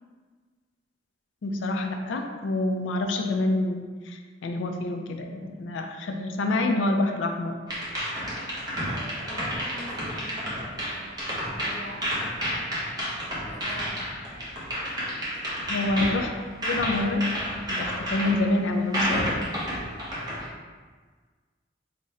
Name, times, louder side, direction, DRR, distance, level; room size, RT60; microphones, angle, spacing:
voice 1, 1.4-7.6 15.7-16.3 16.6-17.3 17.7-19.4, left 2 dB, 85° left, 4 dB, 0.4 m, -27 dB
sound 1, 7.7-20.5, equal, 20° right, 0.8 m, -31 dB
voice 2, 8.8-11.1 11.4-12.1 12.6-13.1 13.5-14.0 15.7-16.0, equal, 60° right, -7 dB, 1.4 m, -44 dB
3.7 x 2.1 x 4.0 m, 1.5 s
head